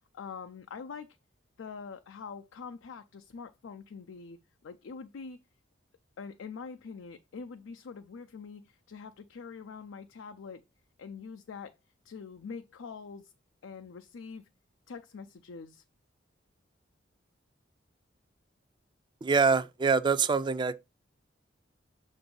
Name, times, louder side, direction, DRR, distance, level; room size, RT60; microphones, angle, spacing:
voice 1, 0.1-1.2 1.6-5.4 6.2-10.6 11.0-11.8 12.0-13.3 13.6-14.5 14.9-15.8, left 5 dB, 90° left, 0.4 m, -44 dB
voice 2, 19.2-20.7, right 5 dB, 25° right, 0.3 m, -25 dB
6.8 x 2.6 x 5.3 m
head